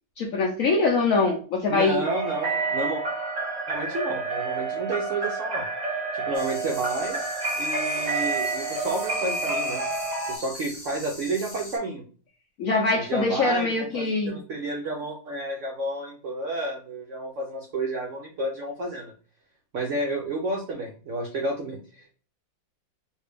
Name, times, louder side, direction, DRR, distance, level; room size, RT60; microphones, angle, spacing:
voice 1, 0.2-2.1 12.6-14.4, left 3 dB, 70° left, -1 dB, 0.8 m, -23 dB
voice 2, 1.7-3.0 3.7-5.7 6.1-7.2 7.6-9.8 10.3-12.0 12.9-19.1 19.7-22.1, right 2 dB, 75° right, 1 dB, 0.7 m, -31 dB
sound 1, 2.0-10.4, right 3 dB, 35° right, 0.7 m, -29 dB
sound 2, 6.3-11.8, left 2 dB, 35° left, 0.7 m, -41 dB
3.2 x 2.6 x 3.3 m, 0.41 s
omnidirectional pair, 2.0 m